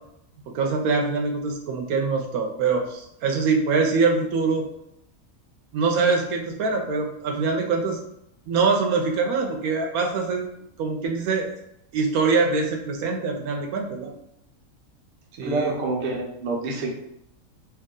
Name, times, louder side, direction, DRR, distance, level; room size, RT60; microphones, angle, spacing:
voice 1, 0.5-4.6 5.7-8.0 8.5-10.5 10.8-11.5 11.9-14.1 15.4-15.8, right 4 dB, 85° right, 2 dB, 1.1 m, -24 dB
voice 2, 15.4-16.9, right 2 dB, 55° right, -1 dB, 1.0 m, -27 dB
3.0 x 2.8 x 3.6 m, 0.78 s
omnidirectional pair, 1.5 m